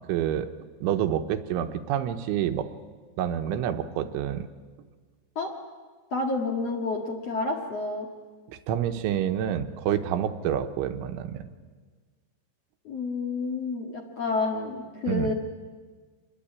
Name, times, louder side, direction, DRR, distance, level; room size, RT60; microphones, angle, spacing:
voice 1, 0.1-0.5 0.8-2.7 3.2-4.5 8.5-11.4 15.1-15.3, right 10 dB, 80° right, 8 dB, 3.4 m, -28 dB
voice 2, 6.1-8.1 12.8-15.3, left 3 dB, 50° left, 0 dB, 2.0 m, -29 dB
26.5 x 21.0 x 8.8 m, 1.5 s
omnidirectional pair, 5.5 m